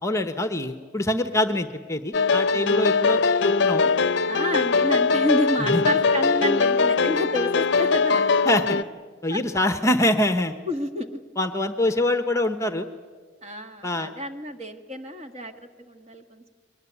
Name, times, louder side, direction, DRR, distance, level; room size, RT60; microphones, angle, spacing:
voice 1, 0.0-3.9 5.6-5.8 8.5-8.8 9.2-10.5 11.4-12.9 13.8-14.1, left 1 dB, 15° left, 8 dB, 0.9 m, -24 dB
sound 1, 2.1-8.8, left 4 dB, 60° left, 0.6 m, -21 dB
voice 2, 2.5-2.9 4.3-8.3 8.7-8.8 9.3-9.6 10.7-11.2 13.4-16.5, equal, 30° right, 6 dB, 1.5 m, -30 dB
23.0 x 20.0 x 9.9 m, 1.5 s
head